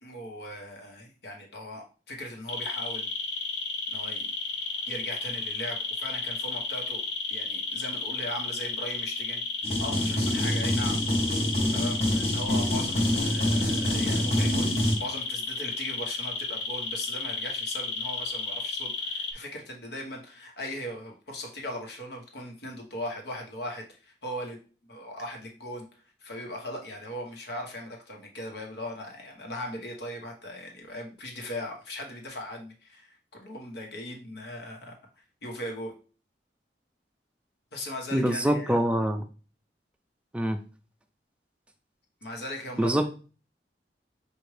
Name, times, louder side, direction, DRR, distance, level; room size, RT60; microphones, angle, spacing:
voice 1, 0.0-3.1 3.9-4.3 4.9-7.0 7.3-9.4 9.8-11.0 11.7-24.6 24.8-25.8 26.2-35.0 35.4-35.9 37.7-38.8 42.2-43.0, left 1 dB, 65° left, 1 dB, 1.2 m, -39 dB
sound 1, 2.5-19.3, left 3 dB, 80° left, 0.9 m, -32 dB
sound 2, 9.6-15.0, equal, 35° left, 1.2 m, -26 dB
voice 2, 38.1-39.2 40.3-40.6 42.8-43.1, equal, 5° right, 7 dB, 0.4 m, -25 dB
6.0 x 2.6 x 3.2 m, 0.37 s
head